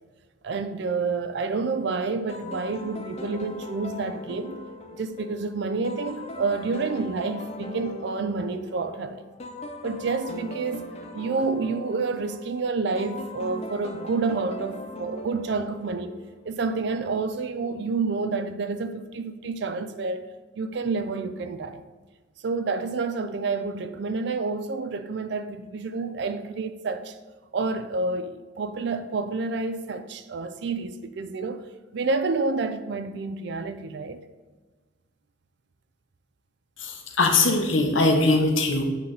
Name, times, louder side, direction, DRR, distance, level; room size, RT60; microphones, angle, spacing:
voice 1, 0.4-4.6 4.9-9.2 9.8-10.9 11.1-16.2 16.5-20.3 20.6-21.8 22.4-27.2 27.5-31.6 31.9-34.2, right 4 dB, 60° right, 0.4 m, -29 dB
sound 1, 2.3-16.5, left 2 dB, 30° left, 0.4 m, -40 dB
voice 2, 36.8-38.8, left 2 dB, 75° left, 0.9 m, -21 dB
8.1 x 3.3 x 3.9 m
head